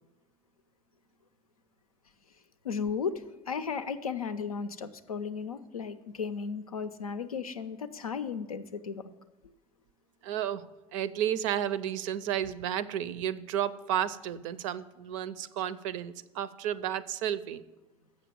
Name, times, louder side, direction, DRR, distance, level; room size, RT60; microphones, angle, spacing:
voice 1, 2.6-9.0, left 6 dB, 90° left, 0.5 m, -35 dB
voice 2, 10.2-10.6 10.9-17.6, right 10 dB, 60° right, 0.5 m, -32 dB
7.7 x 6.2 x 7.5 m
figure-of-eight pair, 70°, 18 cm